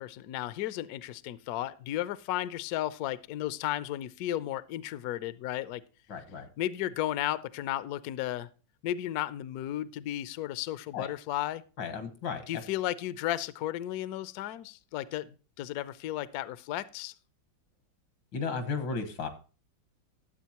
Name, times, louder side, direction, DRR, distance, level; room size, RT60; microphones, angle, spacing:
voice 1, 0.0-5.8 6.6-8.5 8.8-11.6 12.5-17.1, left 13 dB, 70° left, 0.9 m, -34 dB
voice 2, 6.1-6.5 10.9-11.1 11.8-12.5 18.3-19.3, left 5 dB, 90° left, 2.3 m, -34 dB
12.5 x 7.9 x 2.9 m
omnidirectional pair, 2.0 m